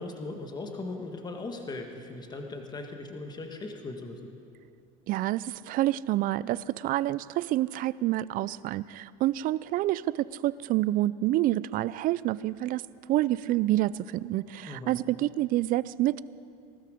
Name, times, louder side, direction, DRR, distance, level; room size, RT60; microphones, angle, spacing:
voice 1, 0.0-4.2 14.6-15.0, left 2 dB, 20° left, 4 dB, 1.7 m, -38 dB
voice 2, 5.1-12.8 13.1-16.2, right 15 dB, 45° right, 19 dB, 0.4 m, -28 dB
19.5 x 13.0 x 5.1 m, 2.5 s
supercardioid pair, 110°, 19 cm